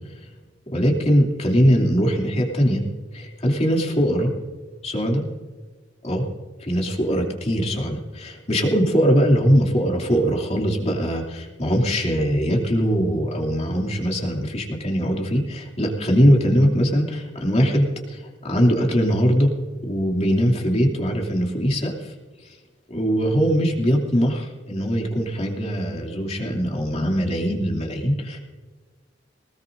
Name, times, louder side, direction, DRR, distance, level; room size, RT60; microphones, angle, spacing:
voice 1, 0.7-2.8 3.1-4.3 4.8-5.2 6.0-6.2 6.6-19.5 19.8-22.1 22.9-28.4, equal, 35° left, 0 dB, 2.8 m, -21 dB
21.0 x 20.0 x 2.7 m, 1.4 s
head